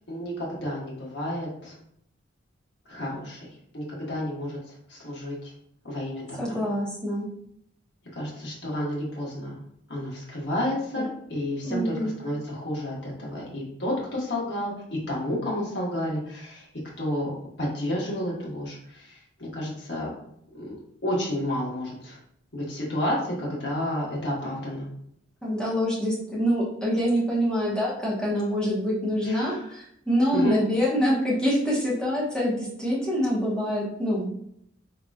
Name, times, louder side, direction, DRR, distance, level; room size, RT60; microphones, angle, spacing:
voice 1, 0.1-1.7 2.9-3.5 3.7-4.6 4.9-5.4 5.8-6.6 8.1-9.5 9.9-11.9 12.2-16.6 17.0-17.3 17.6-20.1 20.5-20.7 21.0-22.2 22.5-24.9 29.2-29.6 30.3-30.6, left 1 dB, 55° left, -5 dB, 1.3 m, -31 dB
voice 2, 6.4-7.3 11.6-12.1 25.4-34.3, equal, 5° left, -7 dB, 1.0 m, -25 dB
3.8 x 2.9 x 2.3 m, 0.71 s
head